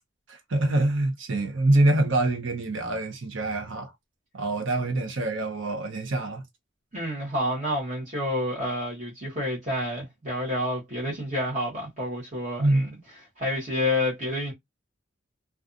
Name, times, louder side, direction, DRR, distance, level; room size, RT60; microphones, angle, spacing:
voice 1, 0.3-3.9 4.3-6.4 12.6-12.9, right 2 dB, 80° right, 0.8 m, -25 dB
voice 2, 6.9-12.8 13.4-14.5, left 1 dB, 40° right, 1.0 m, -29 dB
2.5 x 2.3 x 2.5 m
head